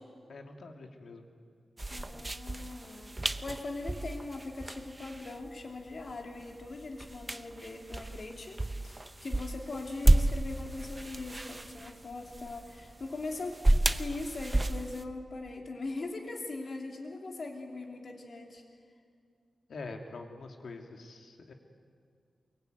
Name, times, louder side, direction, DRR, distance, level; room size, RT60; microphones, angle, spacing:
voice 1, 0.3-1.2 19.7-21.5, left 3 dB, 75° left, 3 dB, 2.6 m, -45 dB
sound 1, 1.8-15.0, right 1 dB, 15° right, 0.7 m, -32 dB
voice 2, 1.9-13.6 13.9-18.6, left 3 dB, 50° left, 2 dB, 3.2 m, -41 dB
23.5 x 22.0 x 9.4 m, 2.2 s
wide cardioid pair, 150°, 0 cm